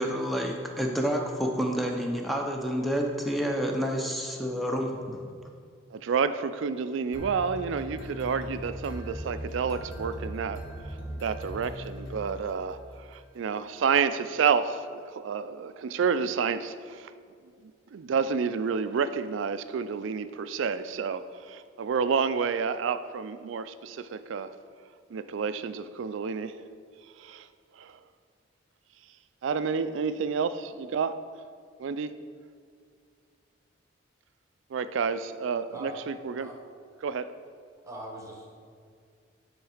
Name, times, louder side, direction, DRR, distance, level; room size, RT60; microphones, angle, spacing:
voice 1, 0.0-5.2, equal, ahead, 1 dB, 0.7 m, -29 dB
voice 2, 5.9-10.6 11.2-14.9 15.1-17.1 17.9-24.5 25.1-26.5 27.2-27.5 27.8-27.9 29.4-31.1 31.8-32.1 34.7-36.5 37.0-37.3, right 6 dB, 70° right, 12 dB, 0.3 m, -29 dB
sound 1, 7.1-12.8, equal, 85° left, 1.4 m, -39 dB
voice 3, 35.7-36.0 36.4-36.5 37.8-38.5, right 1 dB, 15° right, 0 dB, 1.1 m, -41 dB
9.4 x 3.9 x 4.9 m, 2.2 s
head